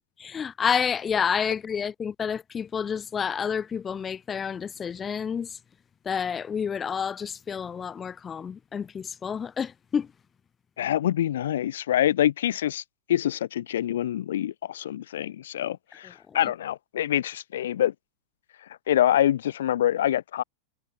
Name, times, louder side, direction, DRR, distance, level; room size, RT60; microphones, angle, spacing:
voice 1, 0.0-5.5 6.0-10.1, left 7 dB, 15° left, 1.3 m, -29 dB
voice 2, 10.8-12.8 13.1-17.9 18.9-20.4, left 11 dB, 90° left, 1.5 m, -25 dB
supercardioid pair, 155°, 0 cm